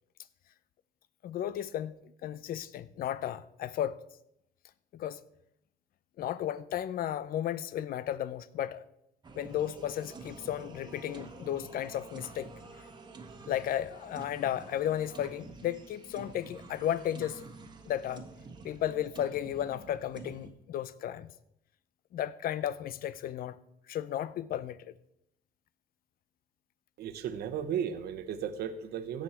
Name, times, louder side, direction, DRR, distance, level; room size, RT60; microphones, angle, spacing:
voice 1, 1.2-4.0 4.9-5.2 6.2-8.8 9.4-12.5 13.5-17.4 17.8-18.2 18.6-21.3 22.1-23.6 23.9-24.8, left 11 dB, 60° left, 0.6 m, -34 dB
sound 1, 9.2-20.5, right 4 dB, 25° right, 1.4 m, -49 dB
voice 2, 27.0-29.2, right 8 dB, 70° right, 1.1 m, -35 dB
16.5 x 6.4 x 4.4 m
cardioid pair, 110°, 17 cm